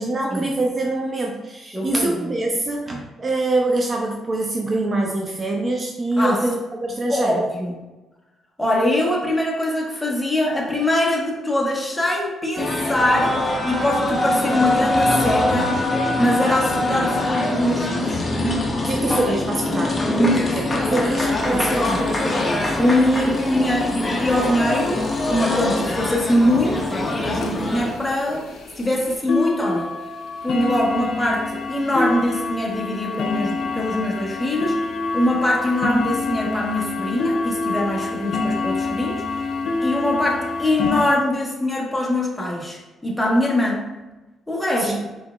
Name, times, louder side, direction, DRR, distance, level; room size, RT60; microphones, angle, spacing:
voice 1, 0.0-7.4 18.8-22.8 44.8-45.0, right 2 dB, 35° right, 1 dB, 0.4 m, -24 dB
voice 2, 1.7-2.3 6.2-6.4 7.1-7.7 8.6-15.7 16.2-18.2 21.5-22.0 22.8-28.4 28.8-29.9 30.4-34.8 35.1-39.2 39.8-43.8 44.5-44.9, left 1 dB, 5° left, -3 dB, 1.0 m, -22 dB
sound 1, 12.6-27.9, left 1 dB, 25° left, 0.6 m, -23 dB
sound 2, 21.4-21.5 21.8-21.9 22.1-22.3 22.6-23.0 23.7-23.8 24.3-24.4 24.8-24.9 25.3-25.4 25.9-26.0 26.4-26.6 27.0-27.1 27.4-41.2, left 3 dB, 70° left, 0.5 m, -27 dB
4.5 x 3.3 x 2.2 m, 1.1 s
cardioid pair, 90°, 0 cm